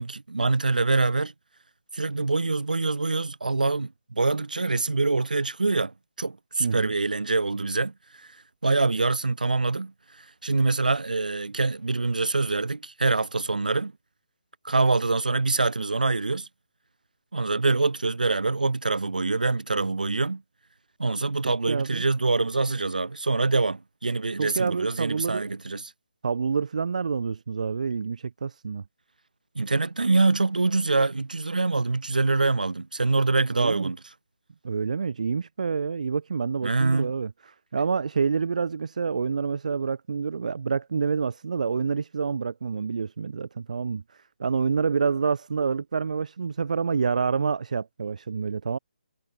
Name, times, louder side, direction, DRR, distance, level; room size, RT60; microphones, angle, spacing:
voice 1, 0.0-1.3 1.9-7.9 8.6-9.9 10.4-13.9 14.6-16.5 17.3-20.4 21.0-25.9 29.5-34.0 36.6-37.1, right 3 dB, 80° right, 1.5 m, -25 dB
voice 2, 6.6-6.9 21.4-22.0 24.4-25.5 26.2-28.8 33.5-33.9 34.6-44.0 44.4-48.8, right 5 dB, 60° right, 1.0 m, -27 dB
figure-of-eight pair, 145°, 4 cm